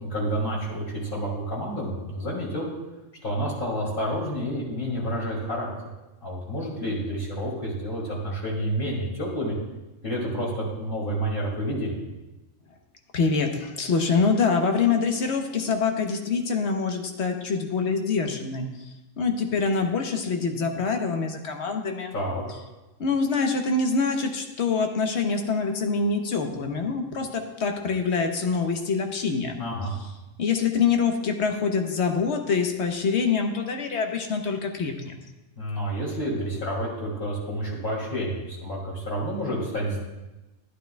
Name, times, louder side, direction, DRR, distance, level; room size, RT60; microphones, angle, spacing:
voice 1, 0.0-2.7 3.2-5.7 6.2-9.5 10.0-12.0 22.1-22.4 29.6-29.9 35.6-40.0, equal, 40° left, -4 dB, 2.8 m, -29 dB
voice 2, 13.1-18.7 19.2-22.1 23.0-29.6 30.4-35.1, left 5 dB, 60° left, 4 dB, 1.2 m, -25 dB
11.5 x 11.0 x 2.3 m, 1.1 s
omnidirectional pair, 1.4 m